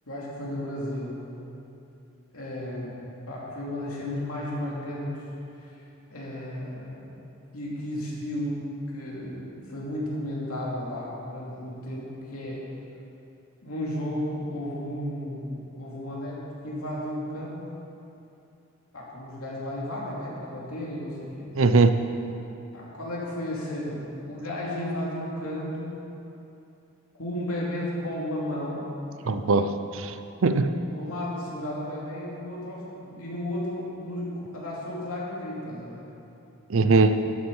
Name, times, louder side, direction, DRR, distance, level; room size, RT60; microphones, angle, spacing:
voice 1, 0.1-1.1 2.3-3.0 3.3-5.8 6.1-7.1 7.5-8.6 8.9-12.6 13.6-17.6 18.9-21.5 22.7-26.0 27.2-28.8 30.9-36.1, left 1 dB, 85° left, -5 dB, 2.7 m, -33 dB
voice 2, 21.6-22.0 29.2-30.1 30.4-30.8 36.7-37.2, right 3 dB, 65° right, 9 dB, 0.5 m, -20 dB
12.5 x 7.3 x 5.4 m, 2.8 s
head